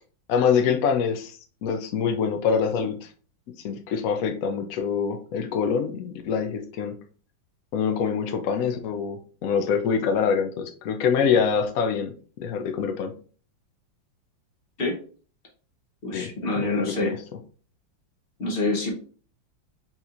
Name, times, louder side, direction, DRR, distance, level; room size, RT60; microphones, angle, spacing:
voice 1, 0.3-3.1 3.6-7.0 7.7-13.2 16.1-16.3 16.6-17.2, left 6 dB, 90° left, 6 dB, 0.7 m, -25 dB
voice 2, 16.0-17.2 18.4-19.0, left 2 dB, 40° left, 0 dB, 0.9 m, -26 dB
4.3 x 4.1 x 2.5 m, 0.41 s
omnidirectional pair, 2.2 m